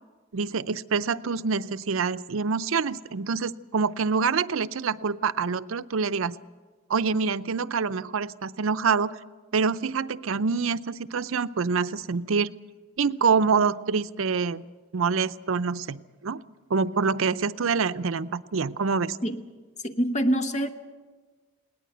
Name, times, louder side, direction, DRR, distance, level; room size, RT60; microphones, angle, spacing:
voice 1, 0.3-6.4 6.9-9.2 9.5-12.5 13.0-14.6 14.9-16.4 16.7-19.2, right 5 dB, 75° right, 13 dB, 0.6 m, -26 dB
voice 2, 19.8-20.7, right 1 dB, 35° left, 8 dB, 1.2 m, -25 dB
20.5 x 18.5 x 7.9 m, 1.4 s
head